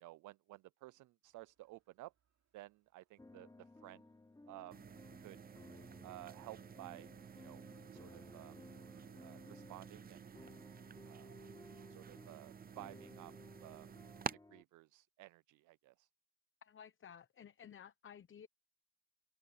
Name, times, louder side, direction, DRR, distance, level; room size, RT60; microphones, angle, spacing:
voice 1, 0.0-2.1 2.5-4.0 4.5-4.8 5.2-5.4 6.0-7.1 7.4-7.6 7.9-8.5 9.2-10.5 11.0-11.3 11.9-13.3 13.6-13.9 14.5-16.1, right 18 dB, 80° right, 0.5 m, -54 dB
sound 1, 1.2-12.5, right 9 dB, 60° right, 3.2 m, -76 dB
sound 2, 3.2-14.6, left 2 dB, 10° left, 1.3 m, -59 dB
sound 3, 4.7-14.3, right 7 dB, 30° right, 0.6 m, -51 dB
voice 2, 16.6-18.5, left 8 dB, 40° left, 1.0 m, -55 dB
cardioid pair, 90°, 30 cm